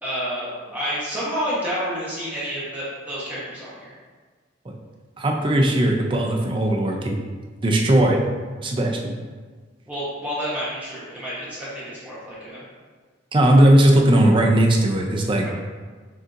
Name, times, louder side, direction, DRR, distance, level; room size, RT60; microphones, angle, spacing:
voice 1, 0.0-4.0 9.9-12.6, equal, 10° right, -9 dB, 1.0 m, -29 dB
voice 2, 5.2-7.2 7.6-8.2 8.6-9.2 13.3-15.5, right 1 dB, 25° right, 1 dB, 0.5 m, -18 dB
6.0 x 2.7 x 2.5 m, 1.5 s
head